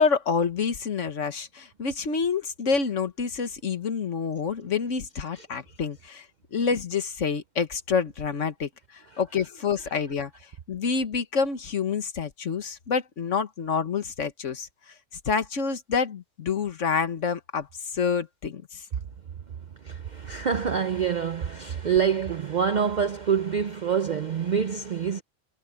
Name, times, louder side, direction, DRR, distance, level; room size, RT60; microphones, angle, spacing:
voice 1, 0.0-14.9 15.3-18.9, left 5 dB, 70° left, 1.7 m, -28 dB
voice 2, 19.5-25.2, right 7 dB, 50° right, 0.6 m, -26 dB
omnidirectional pair, 1.3 m